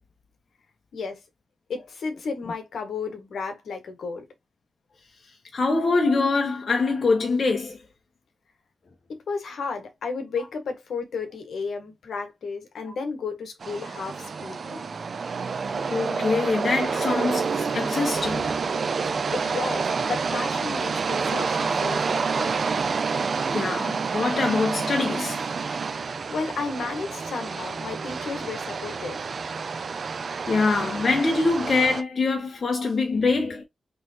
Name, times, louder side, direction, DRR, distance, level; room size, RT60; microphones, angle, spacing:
voice 1, 0.9-1.2 1.7-4.2 9.1-14.8 19.3-22.5 26.3-29.2, left 4 dB, 80° left, 1.5 m, -33 dB
voice 2, 5.5-7.8 14.7-14.8 15.9-18.5 23.5-25.4 30.5-33.6, left 3 dB, 55° left, 1.0 m, -24 dB
sound 1, 13.6-32.0, right 5 dB, 60° right, 0.6 m, -28 dB
4.4 x 3.2 x 2.7 m
cardioid pair, 65°, 0 cm